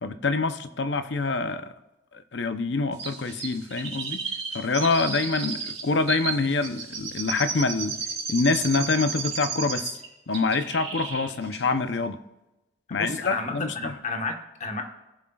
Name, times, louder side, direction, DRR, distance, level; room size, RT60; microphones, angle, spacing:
voice 1, 0.0-1.7 2.1-4.2 4.5-8.0 8.3-10.0 10.3-12.2 12.9-14.0, left 3 dB, 65° left, 10 dB, 0.7 m, -26 dB
Chirp tweet, 3.0-10.0 10.3-11.3 11.5-11.6, right 5 dB, 35° right, 3.2 m, -33 dB
voice 2, 12.9-14.8, left 3 dB, 40° left, 4 dB, 1.3 m, -32 dB
18.5 x 7.5 x 2.4 m, 1.0 s
head